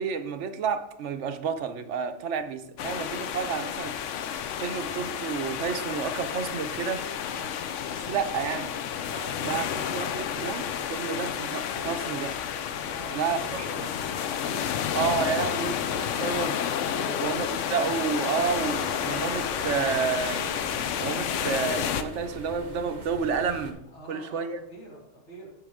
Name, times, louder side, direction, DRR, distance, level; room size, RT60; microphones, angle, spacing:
voice 1, 0.0-4.0 4.6-7.0 7.9-8.7 9.4-9.6 9.9-12.4 13.1-13.9 14.9-16.5 17.2-20.5 21.0-23.8 24.1-24.6, right 6 dB, 75° right, 9 dB, 1.0 m, -30 dB
sound 1, 2.8-22.0, left 8 dB, 85° left, 1.0 m, -31 dB
voice 2, 7.3-7.6 9.0-10.0 12.7-13.9 14.3-14.8 16.9-17.3 18.7-19.0 23.9-25.5, right 1 dB, 65° left, -3 dB, 2.7 m, -44 dB
sound 2, 18.4-23.7, right 2 dB, 40° right, 1.2 m, -41 dB
8.0 x 7.9 x 3.6 m, 0.80 s
omnidirectional pair, 1.2 m